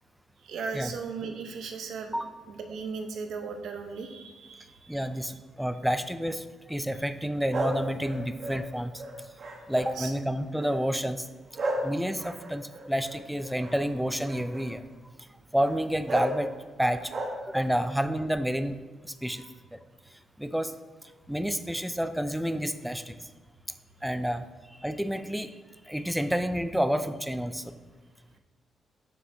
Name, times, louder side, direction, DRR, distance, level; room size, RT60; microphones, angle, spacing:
voice 1, 0.4-2.2 2.5-5.0 9.9-10.1 19.4-19.5, right 5 dB, 80° right, 5 dB, 0.7 m, -37 dB
voice 2, 4.9-9.0 9.7-11.3 11.8-14.8 15.5-16.5 16.8-17.1 17.4-18.8 19.0-19.4 19.7-19.8 20.4-20.7 21.3-23.2 24.0-24.4 24.8-25.6 25.9-27.7, equal, ahead, 10 dB, 0.3 m, -29 dB
sound 1, 7.5-10.1 10.6-10.9 11.5-13.8 14.2-14.7 15.6-15.8 16.1-16.4 16.8-17.7, right 1 dB, 50° right, 1.1 m, -34 dB
7.4 x 5.6 x 2.7 m, 1.4 s
cardioid pair, 105°, 0 cm